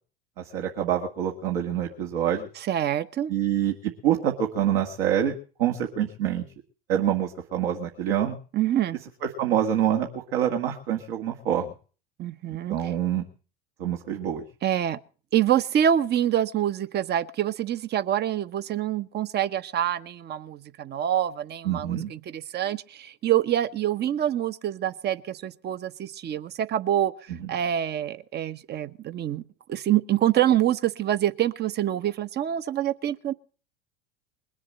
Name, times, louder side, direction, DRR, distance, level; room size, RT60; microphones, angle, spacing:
voice 1, 0.5-2.5 3.3-6.4 6.9-8.4 9.4-11.7 12.7-13.2 13.8-14.4 21.7-22.1, right 10 dB, 65° right, 2.0 m, -26 dB
voice 2, 2.6-3.3 8.5-9.0 12.2-12.9 14.6-15.0 15.3-29.4 29.7-33.3, right 11 dB, 35° right, 1.0 m, -26 dB
21.5 x 7.5 x 7.7 m
hypercardioid pair, 80°, 31 cm